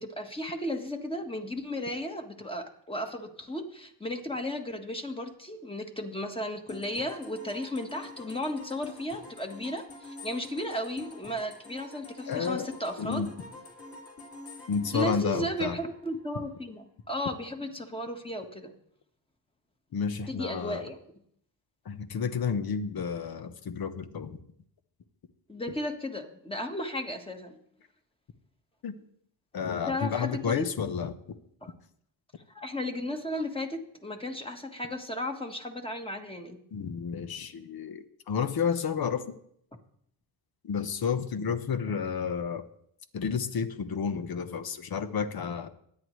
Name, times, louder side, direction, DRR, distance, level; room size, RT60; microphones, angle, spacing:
voice 1, 0.0-13.3 14.9-18.7 20.3-21.0 25.5-27.6 29.9-30.7 31.6-31.7 32.5-36.6, left 1 dB, 10° left, 4 dB, 1.5 m, -35 dB
sound 1, 6.7-16.4, left 2 dB, 30° left, 2.7 m, -47 dB
voice 2, 12.3-12.7 13.0-13.3 14.7-15.8 19.9-20.8 21.8-24.4 28.8-28.9 29.5-31.1 36.7-39.3 40.6-42.6 43.1-45.7, left 6 dB, 50° left, 10 dB, 1.1 m, -31 dB
23.0 x 9.7 x 3.2 m, 0.69 s
cardioid pair, 110°, 45 cm